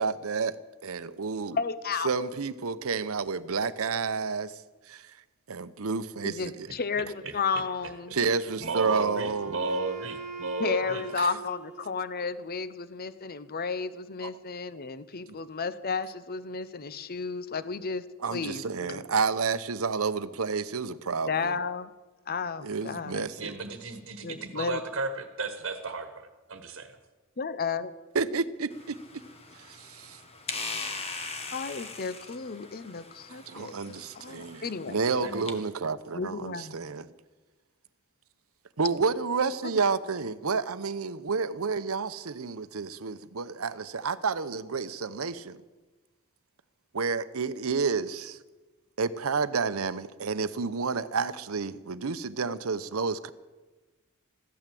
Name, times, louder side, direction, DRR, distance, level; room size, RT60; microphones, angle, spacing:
voice 1, 0.0-1.6 2.0-4.6 4.9-5.1 5.5-6.7 8.1-9.6 11.2-11.3 14.2-14.3 18.2-21.5 22.6-23.6 28.1-29.0 29.6-30.2 33.3-37.1 38.8-45.6 46.9-48.4 49.0-53.3, right 5 dB, 80° right, 14 dB, 0.8 m, -30 dB
voice 2, 1.5-2.1 6.2-8.2 10.6-18.0 18.3-19.1 21.3-21.9 22.3-23.3 24.2-24.8 27.4-27.9 31.5-35.0 36.1-36.8, left 5 dB, 45° left, 14 dB, 0.7 m, -33 dB
voice 3, 6.7-7.6 8.3-11.0 23.4-27.0 35.2-35.5, right 3 dB, 60° right, 7 dB, 1.4 m, -35 dB
Wind instrument woodwind instrument, 8.5-12.5, right 4 dB, 35° right, 1.5 m, -42 dB
sound 1, 28.7-35.5, left 4 dB, 30° left, 1.4 m, -41 dB
15.0 x 12.5 x 7.6 m, 1.2 s
head